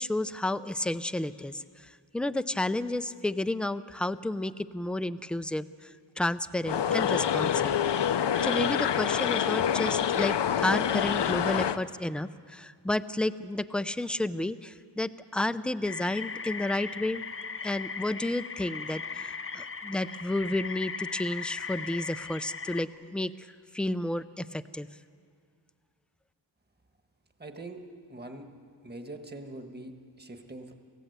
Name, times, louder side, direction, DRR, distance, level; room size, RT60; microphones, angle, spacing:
voice 1, 0.0-1.6 2.1-5.9 6.2-8.1 8.4-10.3 10.6-17.2 17.6-23.3 23.7-24.9, left 1 dB, ahead, 13 dB, 0.5 m, -31 dB
sound 1, 6.7-11.8, left 9 dB, 65° left, 0.7 m, -26 dB
sound 2, 15.8-22.8, left 5 dB, 30° left, 0.8 m, -38 dB
voice 2, 27.4-27.8 28.1-28.5 28.8-30.7, right 2 dB, 20° right, 5 dB, 1.7 m, -43 dB
27.5 x 16.0 x 8.1 m, 2.2 s
wide cardioid pair, 125°, 45 cm